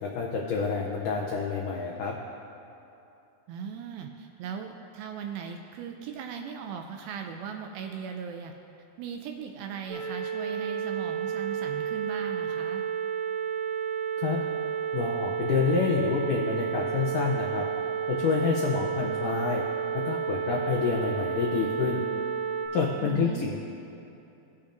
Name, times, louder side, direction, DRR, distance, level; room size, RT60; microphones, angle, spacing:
voice 1, 0.0-2.1 14.2-14.4 14.9-17.7 18.1-19.6 20.0-22.0 22.7-23.6, left 5 dB, 85° left, -1 dB, 1.8 m, -28 dB
voice 2, 3.5-8.5 9.0-12.9 23.0-23.5, right 7 dB, 80° right, 4 dB, 2.2 m, -38 dB
sound 1, 9.9-22.7, right 8 dB, 65° right, 2.4 m, -31 dB
18.5 x 7.0 x 2.6 m, 2.8 s
omnidirectional pair, 4.6 m